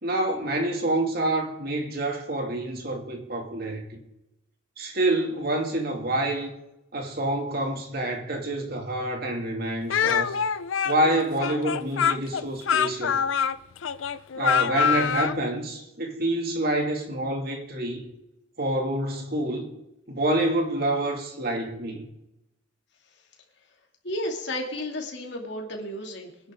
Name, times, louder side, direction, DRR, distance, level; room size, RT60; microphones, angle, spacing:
voice 1, 0.0-4.0 4.8-6.5 6.9-10.4 10.8-13.2 14.4-18.1 18.6-19.7 20.1-22.1, right 1 dB, 50° right, 2.5 m, -27 dB
Speech, 9.9-15.4, left 7 dB, 75° left, 0.5 m, -25 dB
voice 2, 24.0-26.5, left 1 dB, 60° left, 2.7 m, -33 dB
23.5 x 10.5 x 3.8 m
head